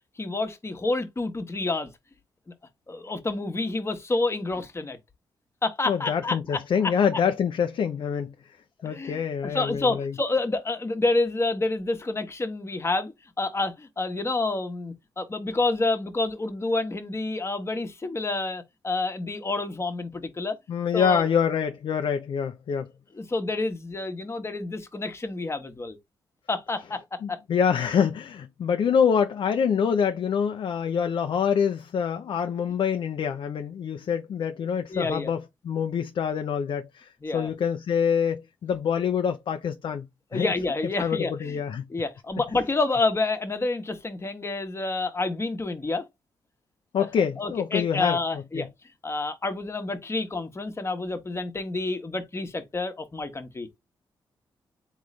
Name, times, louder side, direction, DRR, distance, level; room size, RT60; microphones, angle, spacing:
voice 1, 0.2-1.9 2.9-5.0 5.6-6.9 8.8-20.6 20.9-21.3 23.1-26.0 26.5-27.4 34.9-35.3 37.2-37.5 40.3-41.6 41.9-46.0 47.0-47.1 47.4-48.7 49.0-53.7, left 3 dB, 30° left, 1.1 m, -28 dB
voice 2, 5.9-8.3 8.8-10.1 20.7-22.9 27.2-35.4 35.6-40.1 40.3-40.5 41.0-41.8 46.9-48.2 48.5-48.7, left 7 dB, 65° left, 0.5 m, -26 dB
3.9 x 3.1 x 3.2 m
cardioid pair, 70°, 9 cm